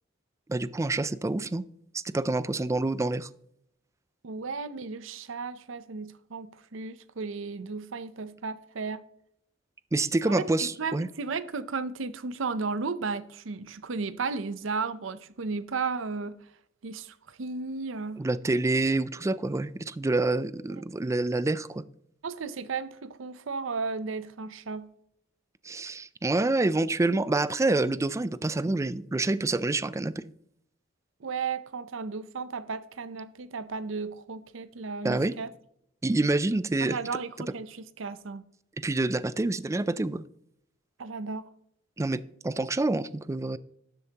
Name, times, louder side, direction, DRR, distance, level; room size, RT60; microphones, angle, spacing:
voice 1, 0.5-1.6 1.9-3.3 9.9-11.1 18.2-21.8 25.6-30.1 35.0-35.3 36.0-37.0 38.8-40.2 42.0-43.6, right 2 dB, 15° right, 0.3 m, -27 dB
voice 2, 4.2-9.0 10.3-16.5 16.8-18.2 22.2-24.9 31.2-35.5 36.8-38.4 41.0-41.5, right 4 dB, 75° right, 0.6 m, -34 dB
12.5 x 7.8 x 2.9 m
head